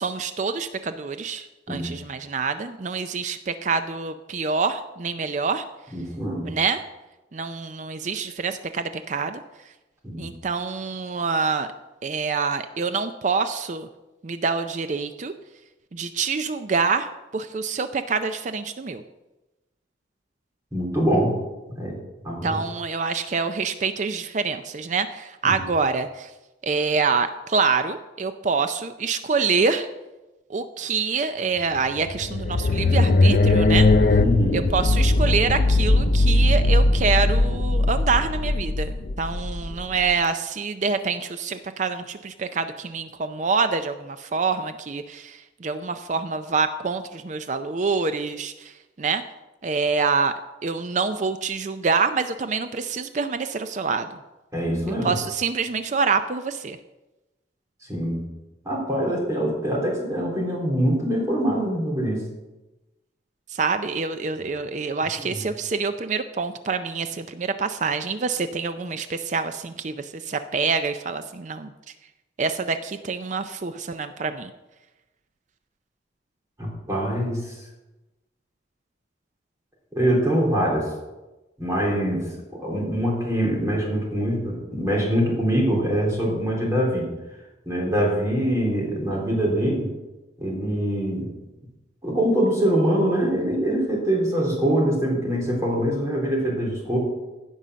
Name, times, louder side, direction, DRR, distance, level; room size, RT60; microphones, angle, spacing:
voice 1, 0.0-5.6 6.4-6.8 7.3-9.4 10.2-11.7 12.0-13.9 14.2-15.3 15.9-19.0 22.4-26.3 26.6-29.9 30.5-33.9 34.5-48.7 49.0-49.2 49.6-50.3 50.6-54.1 55.0-56.8 63.5-71.7 72.4-74.5, right 4 dB, 40° right, 9 dB, 0.4 m, -26 dB
voice 2, 5.9-6.5 10.0-10.2 20.7-21.4 21.7-22.0 22.2-22.6 25.4-25.6 34.2-34.7 54.5-55.1 57.9-58.2 58.7-62.2 65.2-65.4 76.6-77.6 79.9-80.9 81.6-87.1 87.7-89.9 90.4-91.3 92.0-97.0, equal, 15° right, -3 dB, 3.5 m, -24 dB
sound 1, 31.8-40.1, left 2 dB, 50° left, 0.5 m, -20 dB
15.5 x 5.5 x 6.2 m, 1.1 s
head